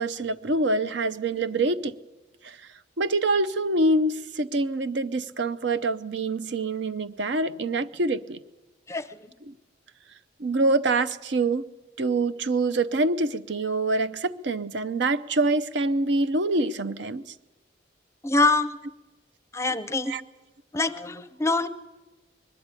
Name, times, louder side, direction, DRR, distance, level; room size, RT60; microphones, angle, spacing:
voice 1, 0.0-1.9 3.0-8.4 10.4-11.7 12.0-17.3 20.1-20.2, right 2 dB, 70° right, 12 dB, 0.7 m, -25 dB
voice 2, 18.2-18.7 19.5-20.1 20.7-21.7, left 2 dB, 15° left, 13 dB, 0.6 m, -24 dB
20.5 x 13.0 x 9.7 m, 1.1 s
head